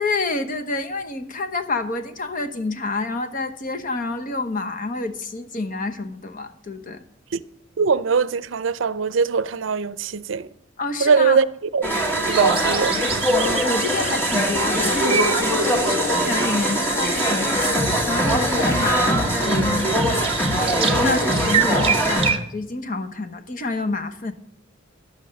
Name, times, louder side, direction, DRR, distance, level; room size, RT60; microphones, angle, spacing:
voice 1, 0.0-7.0 10.8-11.4 13.3-17.8 18.1-19.9 20.4-24.3, left 3 dB, 45° left, 1.0 m, -28 dB
voice 2, 7.8-10.5 11.0-11.5 11.7-11.8 12.2-13.0, right 5 dB, 70° right, 0.5 m, -21 dB
sound 1, 11.8-22.3, right 1 dB, 10° left, 1.8 m, -21 dB
sound 2, 12.3-22.4, right 8 dB, 30° right, 0.9 m, -29 dB
11.0 x 7.8 x 6.5 m
head